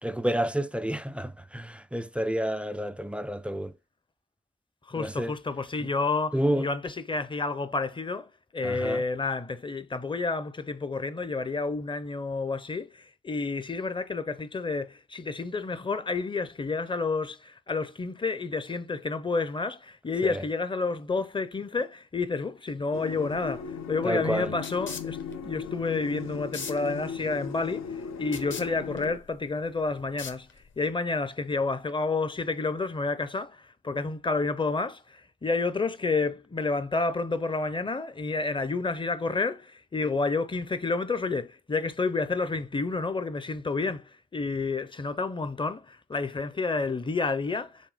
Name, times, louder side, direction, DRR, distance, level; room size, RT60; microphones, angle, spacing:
voice 1, 0.0-3.7 5.0-5.3 6.3-6.7 8.6-9.0 20.2-20.4 24.0-24.5, right 1 dB, 5° right, 0.4 m, -29 dB
voice 2, 4.9-30.5 30.8-47.9, left 3 dB, 15° left, 0.8 m, -30 dB
sound 1, 22.9-29.2, left 7 dB, 65° left, 0.8 m, -37 dB
sound 2, 23.3-30.9, left 5 dB, 40° left, 1.3 m, -44 dB
7.6 x 3.5 x 5.1 m
cardioid pair, 90°, 30 cm